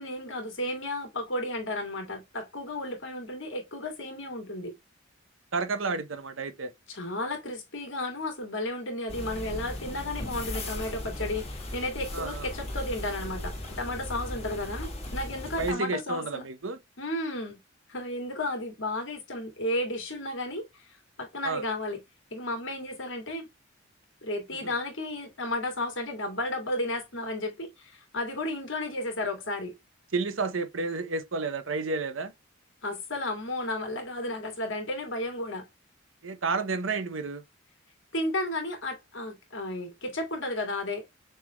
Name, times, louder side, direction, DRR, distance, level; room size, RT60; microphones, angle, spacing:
voice 1, 0.0-4.7 6.9-16.4 17.0-17.6 17.9-20.9 21.2-22.0 22.3-23.5 24.2-29.8 32.8-35.7 38.1-41.1, left 1 dB, 75° left, 2.5 m, -33 dB
voice 2, 5.5-6.7 12.1-12.5 15.6-16.8 21.4-21.6 24.6-24.7 30.1-32.3 36.2-37.4, right 4 dB, 85° right, 0.9 m, -31 dB
sound 1, 9.1-15.7, left 1 dB, 30° left, 2.3 m, -37 dB
6.5 x 3.4 x 2.3 m
head